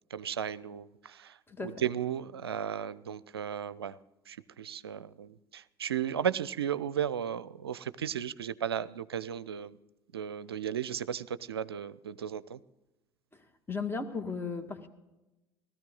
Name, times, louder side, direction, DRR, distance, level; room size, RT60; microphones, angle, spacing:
voice 1, 0.1-1.4 1.6-4.0 4.3-9.8 10.1-12.6, right 9 dB, 80° right, 17 dB, 0.4 m, -35 dB
voice 2, 1.5-1.8 13.3-14.9, left 4 dB, 15° left, 7 dB, 2.0 m, -36 dB
19.0 x 14.0 x 3.9 m, 0.99 s
figure-of-eight pair, 60°, 13 cm